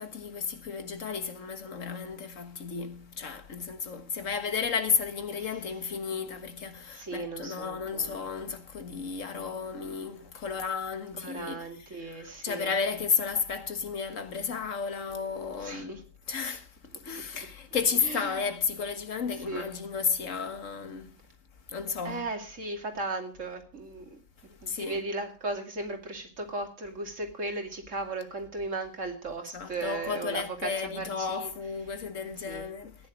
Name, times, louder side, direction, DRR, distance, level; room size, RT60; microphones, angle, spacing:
voice 1, 0.0-11.7 12.0-16.7 17.0-21.1 21.7-22.3 24.7-25.0 29.5-33.0, left 5 dB, 80° left, 1.8 m, -33 dB
voice 2, 6.9-8.3 11.2-12.7 15.6-16.0 18.0-18.4 19.5-19.7 22.0-24.2 24.6-31.5 32.4-32.7, right 2 dB, 70° right, 2.9 m, -36 dB
15.5 x 10.5 x 5.2 m
omnidirectional pair, 1.3 m